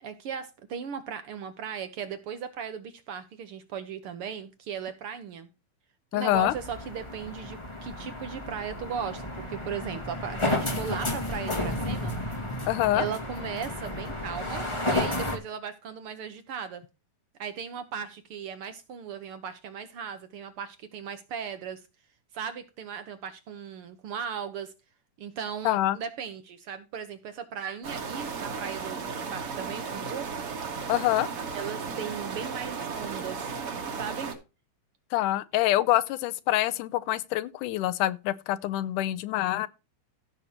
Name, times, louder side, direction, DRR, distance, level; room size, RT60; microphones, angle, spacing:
voice 1, 0.0-5.5 6.1-12.1 12.9-16.8 17.4-21.8 22.3-24.7 25.2-30.4 31.5-33.5 33.9-34.3, right 7 dB, 75° right, 1.3 m, -37 dB
voice 2, 6.1-6.5 12.7-13.1 25.6-26.0 30.9-31.3 35.1-39.7, left 15 dB, 80° left, 2.1 m, -26 dB
sound 1, 6.3-15.4, left 1 dB, 20° left, 0.7 m, -32 dB
sound 2, 27.8-34.3, right 5 dB, 50° right, 2.7 m, -35 dB
16.0 x 6.5 x 2.9 m
omnidirectional pair, 3.8 m